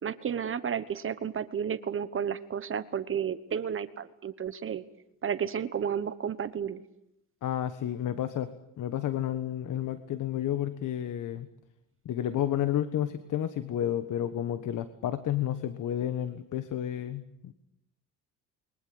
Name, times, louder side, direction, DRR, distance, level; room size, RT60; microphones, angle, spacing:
voice 1, 0.0-4.8 5.2-6.8, right 8 dB, 35° right, 13 dB, 1.2 m, -32 dB
voice 2, 7.4-11.5 12.0-17.5, left 11 dB, 60° left, 11 dB, 1.4 m, -31 dB
28.5 x 23.0 x 7.9 m, 0.84 s
cardioid pair, 125°, 35 cm